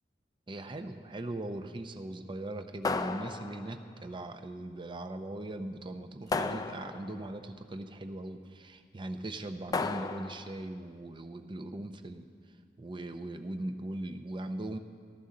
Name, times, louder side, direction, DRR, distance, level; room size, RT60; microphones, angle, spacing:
voice 1, 0.5-12.3 12.8-14.8, right 1 dB, 25° right, 7 dB, 0.5 m, -40 dB
sound 1, 2.8-3.9 6.3-7.3 9.7-10.6, left 4 dB, 20° left, 0.3 m, -34 dB
15.5 x 12.5 x 3.8 m, 2.1 s
head